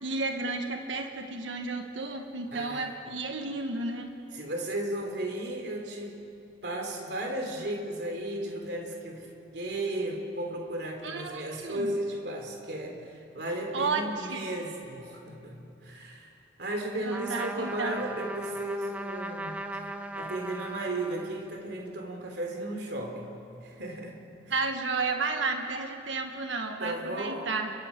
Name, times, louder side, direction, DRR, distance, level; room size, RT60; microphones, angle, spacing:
voice 1, 0.0-4.1 11.0-11.9 13.7-14.4 17.0-18.0 24.5-27.7, right 3 dB, 90° right, 4 dB, 1.6 m, -32 dB
voice 2, 2.5-2.9 4.3-6.3 6.6-9.3 9.5-16.3 16.6-19.8 20.2-23.3 23.6-24.5 26.8-27.5, right 1 dB, 60° right, 2 dB, 3.3 m, -35 dB
Trumpet, 17.1-21.7, right 1 dB, 10° right, 0.8 m, -38 dB
29.5 x 23.0 x 5.3 m, 2.7 s
head